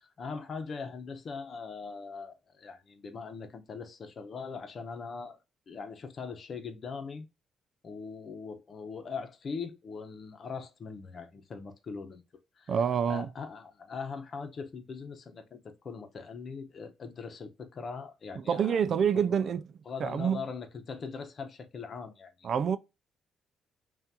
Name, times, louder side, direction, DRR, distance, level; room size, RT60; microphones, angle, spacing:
voice 1, 0.0-5.4 5.7-7.3 7.8-12.2 12.6-12.7 13.1-19.5 19.8-22.5, left 5 dB, 50° left, 0.9 m, -41 dB
voice 2, 12.7-13.3 18.4-19.6 20.0-20.4 22.4-22.8, right 7 dB, 60° right, 0.4 m, -27 dB
5.7 x 2.5 x 2.8 m
cardioid pair, 90°, 0 cm